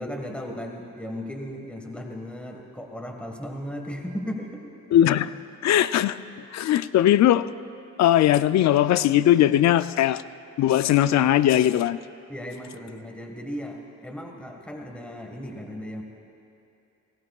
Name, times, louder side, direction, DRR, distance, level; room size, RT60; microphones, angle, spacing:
voice 1, 0.0-4.7 12.3-16.0, equal, 5° left, 2 dB, 1.6 m, -36 dB
voice 2, 4.9-5.3 5.6-6.2 6.5-7.4 8.0-10.2 10.6-12.0, left 12 dB, 65° left, 14 dB, 0.5 m, -19 dB
28.0 x 19.0 x 2.4 m, 2.7 s
cardioid pair, 90°, 30 cm